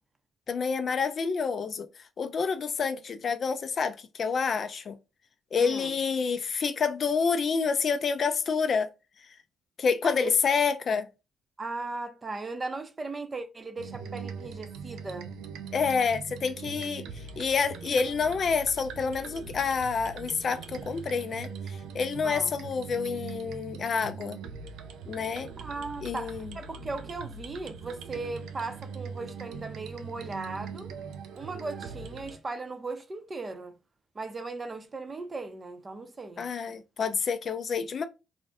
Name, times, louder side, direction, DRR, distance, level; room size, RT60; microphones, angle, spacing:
voice 1, 0.5-1.9 2.2-5.0 5.5-8.9 9.8-11.1 15.7-24.4 25.1-25.5 26.0-26.5 36.4-38.1, left 5 dB, 50° left, 0.3 m, -28 dB
voice 2, 5.6-5.9 10.0-10.3 11.6-15.3 22.2-22.5 25.6-30.9 31.4-33.7 34.1-36.5, right 3 dB, 30° right, 0.6 m, -37 dB
sound 1, 13.8-32.4, right 6 dB, 85° right, 0.3 m, -41 dB
2.5 x 2.1 x 3.4 m
cardioid pair, 90°, 0 cm